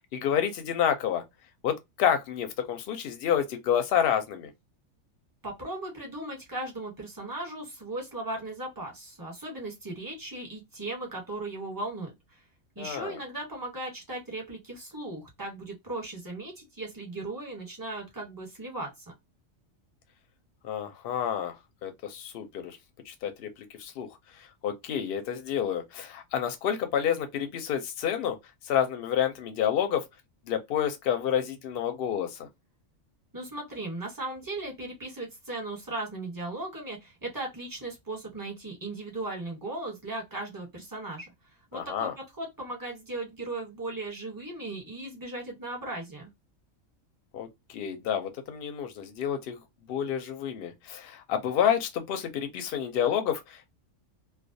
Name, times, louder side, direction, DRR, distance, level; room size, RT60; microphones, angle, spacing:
voice 1, 0.1-1.2 1.6-4.5 12.8-13.2 20.6-21.5 21.8-22.8 23.1-23.5 23.8-24.1 24.6-28.4 28.6-30.0 30.5-32.5 41.7-42.1 47.3-49.6 49.9-53.7, left 9 dB, 60° left, 0.7 m, -29 dB
voice 2, 5.4-12.4 12.7-19.1 33.3-41.3 41.7-42.1 42.4-46.3, right 2 dB, 15° right, 0.9 m, -37 dB
2.3 x 2.2 x 2.6 m
omnidirectional pair, 1.4 m